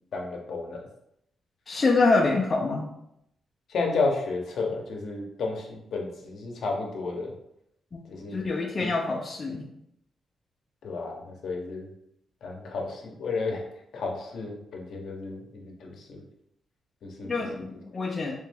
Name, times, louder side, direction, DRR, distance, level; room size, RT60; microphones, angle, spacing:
voice 1, 0.1-0.9 3.7-7.3 8.1-8.4 8.8-8.9 10.8-11.9 12.4-13.6 13.9-16.2 17.0-17.3, left 3 dB, 65° left, 1 dB, 0.8 m, -32 dB
voice 2, 1.7-2.9 7.9-8.0 8.3-9.7 17.3-18.3, left 3 dB, 30° left, -2 dB, 0.5 m, -25 dB
3.4 x 3.1 x 3.4 m, 0.77 s
cardioid pair, 140°, 0 cm